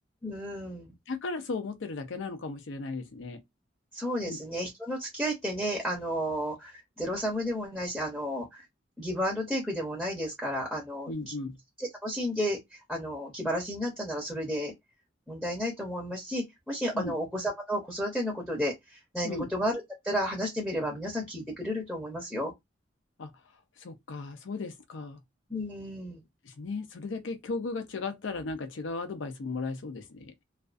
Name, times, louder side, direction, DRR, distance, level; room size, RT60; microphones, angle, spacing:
voice 1, 0.2-0.9 3.9-6.7 7.0-8.6 9.0-11.3 11.8-14.7 15.3-22.5 25.5-26.2, equal, ahead, 0.7 m, -32 dB
voice 2, 1.1-3.4 4.3-4.4 11.1-11.6 16.9-17.1 19.2-19.5 23.2-23.3 23.8-25.2 26.5-30.3, left 3 dB, 85° left, 0.6 m, -36 dB
2.4 x 2.3 x 2.4 m
head